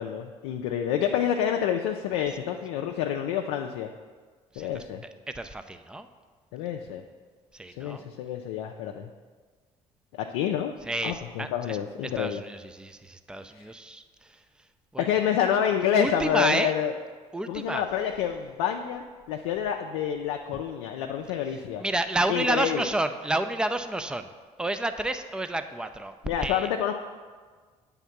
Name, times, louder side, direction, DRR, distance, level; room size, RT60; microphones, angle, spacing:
voice 1, 0.0-3.9 4.6-5.0 6.5-7.0 7.8-9.1 10.2-10.7 11.0-12.4 13.5-13.6 15.0-16.9 17.5-21.8 22.3-22.9 26.2-26.9, left 9 dB, 90° left, 3 dB, 0.4 m, -28 dB
voice 2, 5.4-6.1 7.5-8.0 10.9-11.8 12.2-14.0 14.9-15.1 16.0-16.7 17.3-17.8 21.8-24.3 24.6-26.1 26.4-26.7, right 2 dB, 5° right, 9 dB, 0.4 m, -30 dB
8.1 x 3.6 x 5.8 m, 1.5 s
supercardioid pair, 65°, 15 cm